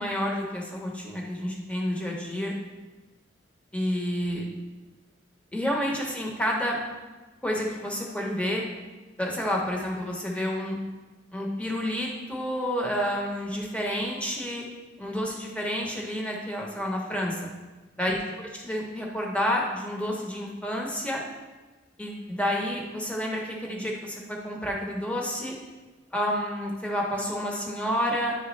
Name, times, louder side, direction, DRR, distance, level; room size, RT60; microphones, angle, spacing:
voice 1, 0.0-2.5 3.7-4.4 5.5-6.8 7.4-8.6 9.2-10.8 11.3-14.7 15.0-17.4 18.0-21.2 22.0-25.5 26.1-28.3, equal, 5° left, -2 dB, 0.9 m, -29 dB
9.5 x 3.4 x 3.2 m, 1.2 s
head